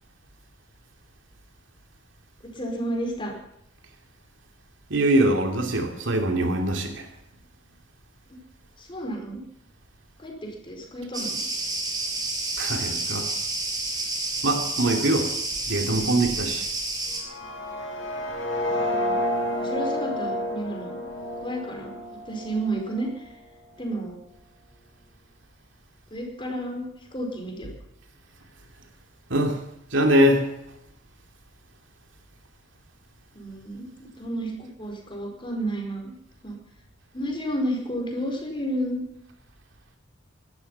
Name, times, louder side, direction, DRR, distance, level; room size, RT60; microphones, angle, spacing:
voice 1, 2.4-3.3 8.8-9.4 10.2-11.4 18.9-19.2 19.6-21.0 21.4-22.0 22.2-23.3 23.8-24.2 26.1-27.7 33.3-36.1 36.4-36.5 37.1-39.0, right 1 dB, 25° left, 1 dB, 4.6 m, -31 dB
voice 2, 4.9-7.1 12.6-13.3 14.4-15.3 15.7-16.7 29.3-29.6 29.9-30.5, right 1 dB, 70° right, 4 dB, 2.7 m, -22 dB
Cricket, 11.1-17.2, right 2 dB, 20° right, 3.8 m, -29 dB
sound 1, 17.1-23.1, left 1 dB, 90° left, 4.8 m, -30 dB
18.0 x 13.0 x 5.6 m, 0.79 s
head